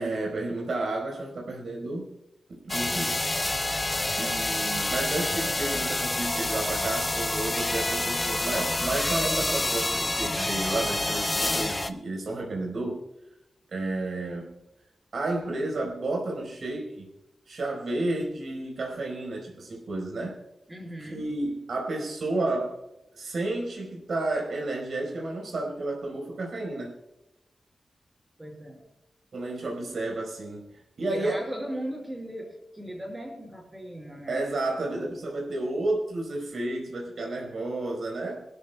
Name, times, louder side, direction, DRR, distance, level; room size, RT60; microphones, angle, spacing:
voice 1, 0.0-2.2 2.5-3.2 4.2-13.0 13.7-14.6 15.1-17.1 17.5-20.4 21.0-22.8 23.1-26.9 29.3-31.4 34.3-38.5, right 2 dB, 65° right, 0 dB, 4.3 m, -31 dB
sound 1, 2.7-11.9, left 2 dB, 20° left, 0.8 m, -28 dB
voice 2, 20.7-21.2 28.4-28.8 31.0-32.5 32.7-34.4 34.9-35.1, equal, 15° right, 0 dB, 5.0 m, -37 dB
26.0 x 13.5 x 2.3 m, 0.93 s
wide cardioid pair, 165°, 0 cm